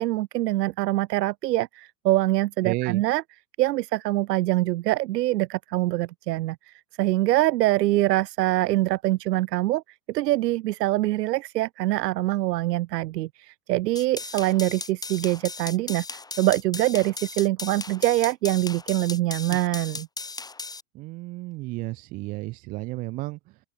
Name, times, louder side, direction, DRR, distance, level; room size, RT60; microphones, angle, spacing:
voice 1, 0.0-3.2 3.6-9.8 10.1-20.1, right 16 dB, 80° right, 0.7 m, -24 dB
voice 2, 2.6-3.0 19.5-19.6 20.9-23.6, right 20 dB, 20° right, 0.4 m, -32 dB
sound 1, 14.0-20.8, left 3 dB, 10° left, 2.3 m, -37 dB
open air
supercardioid pair, 140°, 48 cm